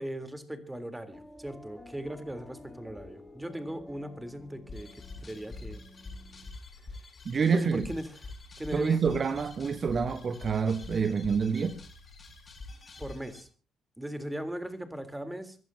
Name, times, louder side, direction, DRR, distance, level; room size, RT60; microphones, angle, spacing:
voice 1, 0.0-4.9 5.2-5.8 7.5-8.2 8.6-9.2 13.0-13.5 14.0-15.6, right 1 dB, 10° right, 3.5 m, -38 dB
sound 1, 1.1-6.5, left 1 dB, 10° left, 4.4 m, -51 dB
sound 2, 4.7-13.4, left 3 dB, 35° left, 7.1 m, -45 dB
voice 2, 7.2-7.9 8.7-11.8, right 6 dB, 45° right, 1.3 m, -27 dB
27.0 x 14.5 x 2.8 m
figure-of-eight pair, 45°, 0 cm